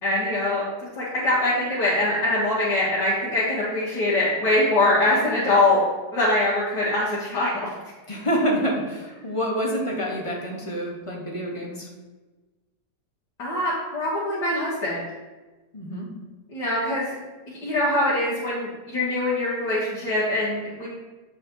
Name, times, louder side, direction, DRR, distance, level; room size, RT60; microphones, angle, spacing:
voice 1, 0.0-0.6 1.0-5.8 6.1-7.7 13.4-15.0 16.5-17.1 17.5-20.9, left 1 dB, 70° left, -10 dB, 2.4 m, -23 dB
voice 2, 8.1-11.9 15.7-16.1, equal, 20° left, -1 dB, 1.0 m, -27 dB
8.6 x 4.8 x 3.9 m, 1.2 s
omnidirectional pair, 1.9 m